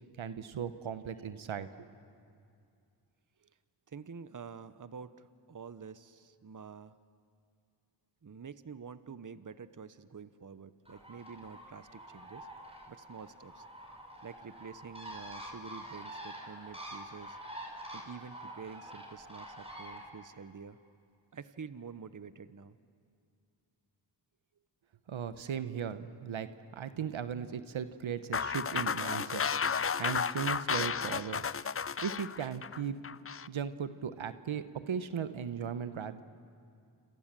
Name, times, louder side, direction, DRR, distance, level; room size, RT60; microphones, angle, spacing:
voice 1, 0.2-1.9 25.1-26.5 26.7-29.4 29.8-31.6 32.0-33.0 33.5-36.2, right 7 dB, 80° right, 11 dB, 1.1 m, -37 dB
voice 2, 3.9-7.0 8.2-12.5 12.9-13.6 14.2-17.4 17.9-20.8 21.3-22.8, right 6 dB, 40° right, 13 dB, 1.0 m, -48 dB
Bird, 10.8-20.1, right 1 dB, 10° right, 5.9 m, -47 dB
sound 1, 28.3-33.5, left 6 dB, 30° left, 0.6 m, -33 dB
27.5 x 27.0 x 7.6 m, 2.4 s
cardioid pair, 45°, 46 cm